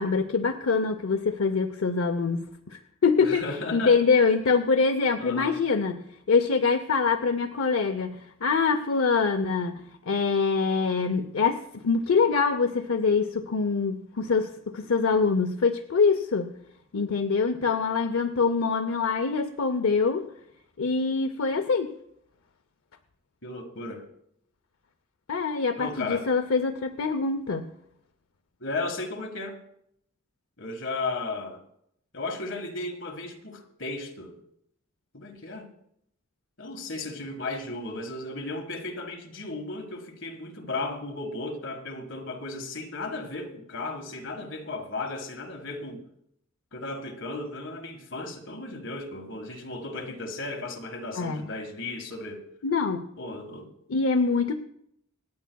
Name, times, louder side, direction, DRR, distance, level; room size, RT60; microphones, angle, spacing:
voice 1, 0.0-16.5 16.9-20.2 20.8-21.9 25.3-27.7 51.2-51.4 52.6-53.1 53.9-54.5, left 4 dB, 75° left, 0.6 m, -24 dB
voice 2, 3.2-4.0 5.2-5.6 23.4-24.1 25.8-26.3 28.6-29.6 30.6-31.6 32.1-34.4 35.1-35.7 36.6-46.0 46.7-52.4 53.2-53.7, left 2 dB, 60° left, 1.7 m, -35 dB
27.0 x 9.2 x 2.3 m
head